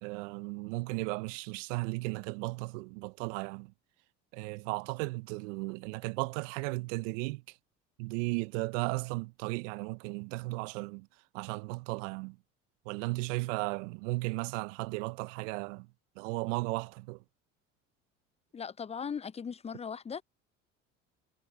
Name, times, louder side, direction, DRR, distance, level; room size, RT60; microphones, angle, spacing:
voice 1, 0.0-3.7 4.3-7.4 8.0-11.1 11.3-12.4 12.9-15.9 16.2-17.2, right 25 dB, 75° right, 0.9 m, -35 dB
voice 2, 18.5-20.2, left 6 dB, 15° left, 0.5 m, -38 dB
hypercardioid pair, 65°, 38 cm